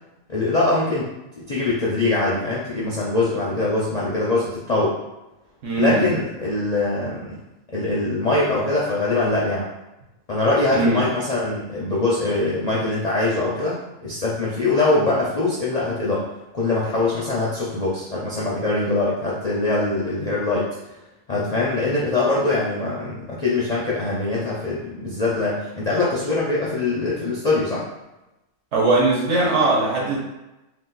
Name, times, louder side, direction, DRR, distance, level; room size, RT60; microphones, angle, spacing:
voice 1, 0.3-1.1 1.4-5.0 5.8-7.3 7.7-9.7 10.3-16.2 16.5-20.7 21.3-27.8, left 2 dB, 50° left, -6 dB, 0.5 m, -23 dB
voice 2, 5.6-6.0 10.8-11.0 28.7-30.2, right 3 dB, 60° right, -4 dB, 1.2 m, -20 dB
2.8 x 2.5 x 3.9 m, 0.98 s
omnidirectional pair, 1.5 m